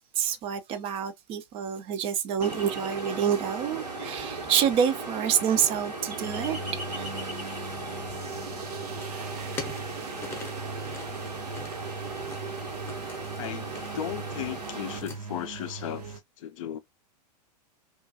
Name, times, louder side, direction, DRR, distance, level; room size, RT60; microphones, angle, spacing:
voice 1, 0.2-6.6 6.9-7.2 9.0-9.5, right 8 dB, 25° right, 0.4 m, -28 dB
Ocean, 2.4-15.0, right 3 dB, 85° right, 1.1 m, -37 dB
sound 1, 6.2-16.2, right 4 dB, 65° right, 0.7 m, -40 dB
sound 2, 9.0-15.2, left 4 dB, 10° left, 0.7 m, -45 dB
voice 2, 13.4-16.8, left 10 dB, 55° left, 0.4 m, -36 dB
2.4 x 2.2 x 2.6 m
figure-of-eight pair, 100°, 21 cm